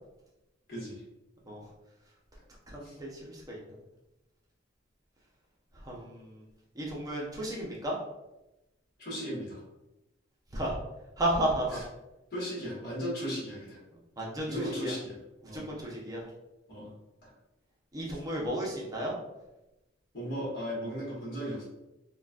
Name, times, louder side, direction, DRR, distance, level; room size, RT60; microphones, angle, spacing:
voice 1, 0.7-1.0 2.8-3.0 9.0-9.6 11.7-11.8 12.3-13.8 14.5-15.2 15.4-15.6 16.7-16.9 17.2-17.3 18.0-18.2 20.1-21.6, equal, 55° left, -6 dB, 1.2 m, -36 dB
voice 2, 2.7-3.6 5.9-6.4 6.8-7.9 10.5-10.8 11.2-11.8 14.2-14.9 15.5-16.2 17.9-19.1, right 1 dB, 20° right, -3 dB, 0.6 m, -33 dB
3.8 x 2.3 x 2.3 m, 0.97 s
head